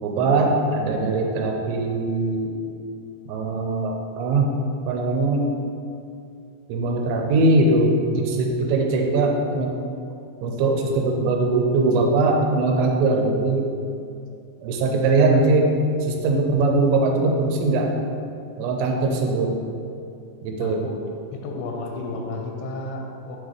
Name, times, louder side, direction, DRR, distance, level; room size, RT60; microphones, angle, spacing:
voice 1, 0.0-2.5 3.3-4.6 4.9-5.5 6.7-9.7 10.4-13.7 14.6-15.7 16.0-17.9 18.6-19.5 20.4-20.9, right 2 dB, 90° right, 1 dB, 2.8 m, -21 dB
voice 2, 20.6-21.0 21.3-23.4, left 2 dB, 90° left, 1 dB, 3.0 m, -32 dB
8.2 x 4.0 x 3.1 m, 2.5 s
omnidirectional pair, 5.0 m